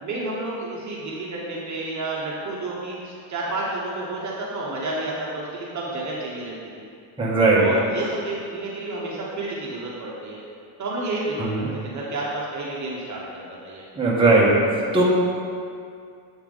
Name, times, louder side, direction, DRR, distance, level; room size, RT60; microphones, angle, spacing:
voice 1, 0.0-6.9 7.5-10.4 10.8-13.9, right 2 dB, 35° right, -5 dB, 1.2 m, -30 dB
voice 2, 7.2-7.6 11.4-11.7 14.0-14.5 14.9-15.0, right 3 dB, 10° right, -6 dB, 1.4 m, -18 dB
8.0 x 5.7 x 3.9 m, 2.3 s
cardioid pair, 125°, 48 cm